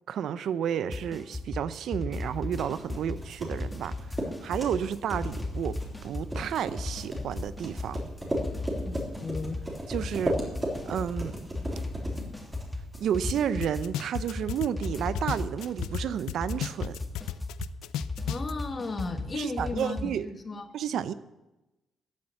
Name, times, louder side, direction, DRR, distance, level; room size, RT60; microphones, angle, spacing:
voice 1, 0.1-3.9 4.4-8.0 9.9-10.4 10.9-11.4 13.0-17.0 19.3-20.3 20.7-21.1, right 9 dB, 70° right, 15 dB, 0.6 m, -31 dB
sound 1, 0.9-20.2, left 2 dB, 10° left, 1.8 m, -36 dB
sound 2, 2.3-13.3, right 1 dB, 20° right, 3.6 m, -36 dB
voice 2, 8.8-9.6 18.3-20.7, left 3 dB, 35° left, 8 dB, 1.6 m, -35 dB
sound 3, 13.3-13.4 13.6-16.0 16.3-18.5, left 12 dB, 90° left, 0.4 m, -33 dB
14.0 x 7.9 x 7.1 m, 1.0 s
cardioid pair, 90°, 0 cm